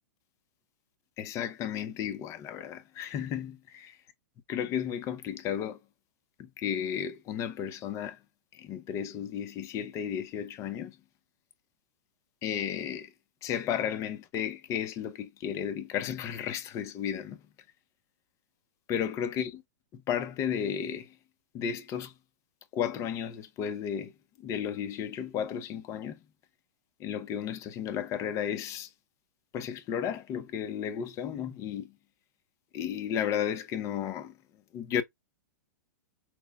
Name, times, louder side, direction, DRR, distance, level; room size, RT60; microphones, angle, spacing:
voice 1, 1.2-3.8 4.5-5.8 6.4-8.2 8.5-11.0 12.4-13.1 13.4-17.4 18.9-19.6 19.9-21.2 21.5-22.1 22.7-24.1 24.4-26.2 27.0-28.9 29.5-31.9 32.7-34.3 34.7-35.0, left 9 dB, 35° left, 0.7 m, -33 dB
6.0 x 2.2 x 2.3 m
hypercardioid pair, 120°, 9 cm